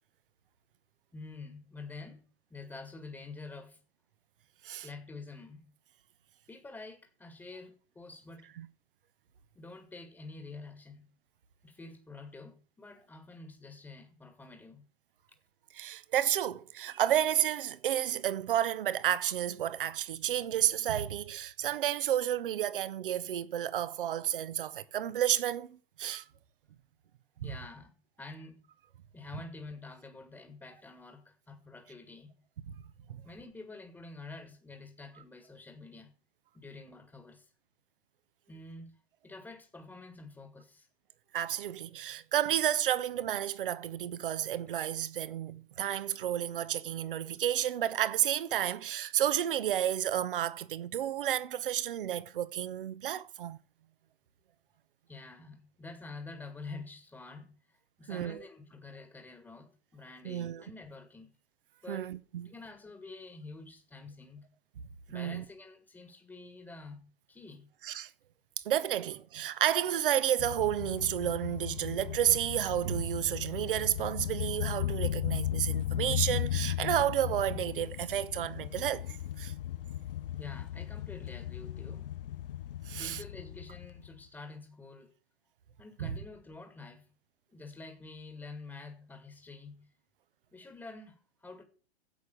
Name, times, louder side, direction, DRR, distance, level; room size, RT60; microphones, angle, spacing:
voice 1, 1.1-3.8 4.7-5.7 6.5-8.5 9.5-11.0 11.6-14.8 27.4-28.7 29.1-32.4 33.2-36.1 36.5-37.5 38.5-39.0 39.2-40.9 55.1-61.4 61.8-62.1 62.4-64.5 65.1-67.7 80.4-82.1 82.9-85.1 85.8-87.1 87.5-89.9 90.5-91.6, left 3 dB, 5° left, 1.6 m, -48 dB
voice 2, 15.7-26.3 32.7-32.8 41.3-53.6 58.1-58.4 60.2-60.6 61.9-62.5 65.1-65.4 67.8-68.1 68.6-79.5 82.9-83.2 86.0-86.1, right 11 dB, 55° right, 1.0 m, -31 dB
sound 1, 70.4-84.2, left 12 dB, 60° left, 0.5 m, -36 dB
10.5 x 8.3 x 7.9 m
figure-of-eight pair, 110°, 31 cm